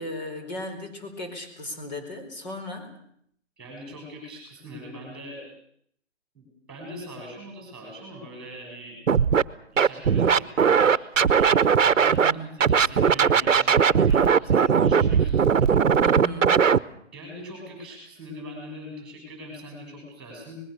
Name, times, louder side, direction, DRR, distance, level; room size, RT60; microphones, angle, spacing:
voice 1, 0.0-2.9 12.2-12.6 16.0-16.7, left 1 dB, 35° left, 4 dB, 4.3 m, -36 dB
voice 2, 3.6-5.4 6.3-9.0 9.6-12.3 12.5-16.0 17.1-20.6, equal, ahead, 0 dB, 6.9 m, -41 dB
Scratching (performance technique), 9.1-9.4 9.8-12.3 12.6-16.8, right 7 dB, 80° right, 1.0 m, -19 dB
25.0 x 20.5 x 6.6 m, 0.68 s
hypercardioid pair, 175°, 38 cm